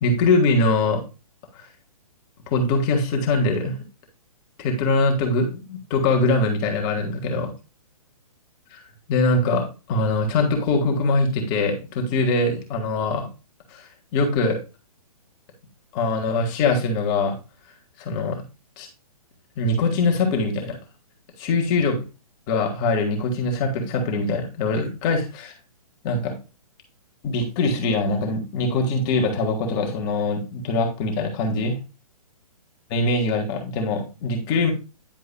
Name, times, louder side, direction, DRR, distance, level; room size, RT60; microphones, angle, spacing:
voice 1, 0.0-1.0 2.5-3.8 4.6-7.5 8.7-8.8 9.1-13.3 13.7-13.9 14.1-14.6 15.9-17.3 18.0-18.4 18.8-18.9 19.6-20.8 21.4-22.0 22.5-25.5 26.0-26.3 27.2-31.8 32.9-34.7, left 3 dB, 35° left, 1 dB, 1.7 m, -22 dB
10.0 x 4.6 x 2.2 m, 0.30 s
figure-of-eight pair, 130°, 19 cm